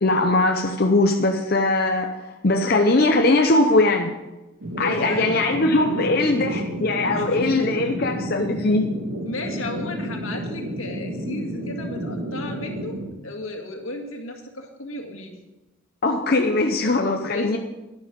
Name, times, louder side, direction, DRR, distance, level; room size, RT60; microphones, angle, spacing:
voice 1, 0.0-2.1 2.4-4.1 4.8-8.9 16.0-17.6, left 2 dB, 45° left, 3 dB, 0.7 m, -20 dB
sound 1, 4.6-13.0, right 1 dB, 80° right, 2.0 m, -31 dB
voice 2, 4.7-5.6 6.0-6.2 7.1-7.4 9.3-13.0 13.2-15.4 17.3-17.6, left 2 dB, 80° left, 3 dB, 2.0 m, -34 dB
11.5 x 10.0 x 5.2 m, 1.0 s
head